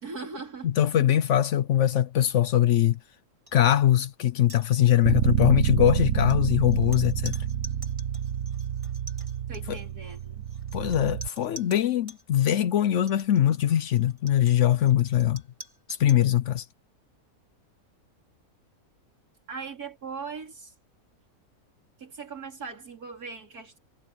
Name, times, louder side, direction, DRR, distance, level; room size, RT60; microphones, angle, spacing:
voice 1, 0.0-0.7 9.5-10.5 19.5-20.7 22.0-23.8, right 4 dB, 80° right, 3.8 m, -39 dB
voice 2, 0.6-3.0 3.5-7.3 9.7-9.8 10.7-15.4 16.0-16.7, left 11 dB, 65° left, 0.8 m, -22 dB
sound 1, 3.5-3.6 3.9-4.1 4.4-5.2 5.9-12.2 12.9-16.3, right 1 dB, 20° right, 3.8 m, -47 dB
Bass guitar, 5.0-11.3, right 10 dB, 60° right, 1.3 m, -28 dB
omnidirectional pair, 1.6 m